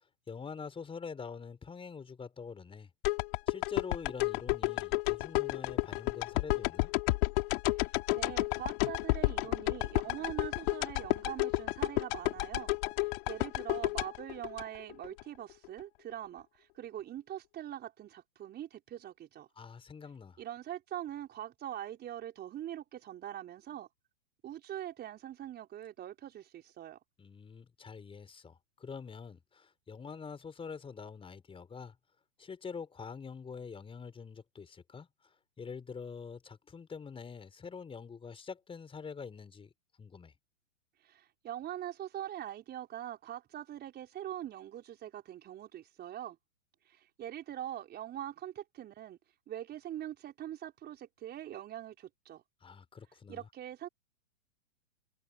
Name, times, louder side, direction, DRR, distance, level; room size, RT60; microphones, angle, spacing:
voice 1, 0.3-2.9 3.5-6.9 19.6-20.4 27.2-31.9 32.4-39.7 40.0-40.3 52.6-53.5, left 5 dB, 15° left, 5.0 m, -45 dB
sound 1, 3.0-15.2 15.6-15.7, left 23 dB, 45° left, 3.0 m, -31 dB
voice 2, 7.7-12.7 13.0-19.5 20.4-23.9 24.4-27.0 41.0-46.4 46.9-49.2 49.5-52.4 53.3-53.9, right 11 dB, 25° right, 4.6 m, -43 dB
hypercardioid pair, 120°, 41 cm